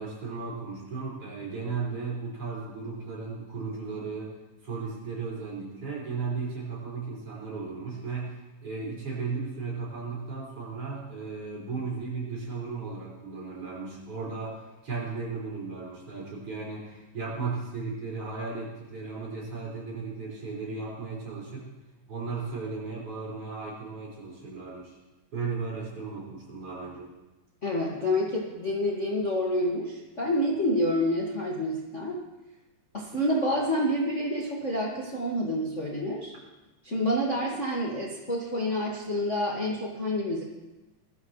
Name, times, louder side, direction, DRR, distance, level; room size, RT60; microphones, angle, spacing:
voice 1, 0.0-4.3 4.6-14.6 14.8-21.7 22.1-25.0 25.3-27.1, right 4 dB, 35° right, -5 dB, 6.0 m, -35 dB
voice 2, 27.6-32.2 32.9-36.3 36.8-40.4, left 1 dB, 85° left, -3 dB, 0.6 m, -28 dB
21.0 x 14.5 x 3.2 m, 1.1 s
omnidirectional pair, 4.7 m